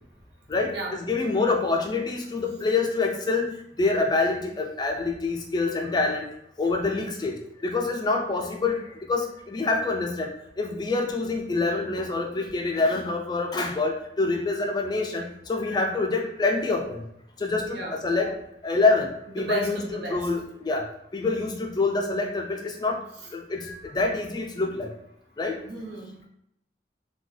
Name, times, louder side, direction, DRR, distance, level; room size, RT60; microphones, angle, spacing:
voice 1, 0.5-3.5 3.8-6.3 6.6-7.4 7.6-8.8 9.1-10.3 10.6-17.0 17.4-18.4 18.6-20.9 21.1-23.0 23.3-24.9 25.4-25.6, left 3 dB, 25° left, 2 dB, 0.3 m, -26 dB
voice 2, 19.4-19.7 20.0-20.3 25.6-26.3, right 1 dB, 70° right, -1 dB, 0.9 m, -34 dB
3.7 x 2.2 x 3.1 m, 0.75 s
head